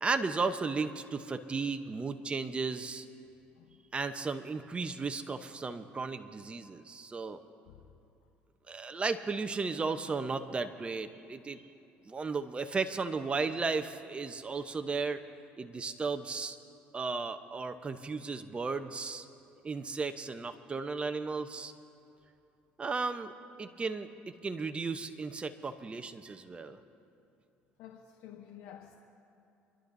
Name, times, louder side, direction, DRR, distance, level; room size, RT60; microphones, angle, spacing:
voice 1, 0.0-3.1 3.9-7.4 8.7-11.6 12.0-15.2 15.6-16.6 16.9-19.3 19.6-21.7 22.8-23.3 23.6-24.1 24.4-26.8, right 4 dB, 25° right, 9 dB, 0.9 m, -35 dB
voice 2, 27.8-29.0, left 10 dB, 80° left, 3 dB, 0.9 m, -50 dB
28.5 x 11.5 x 2.7 m, 2.8 s
supercardioid pair, 90°, 4 cm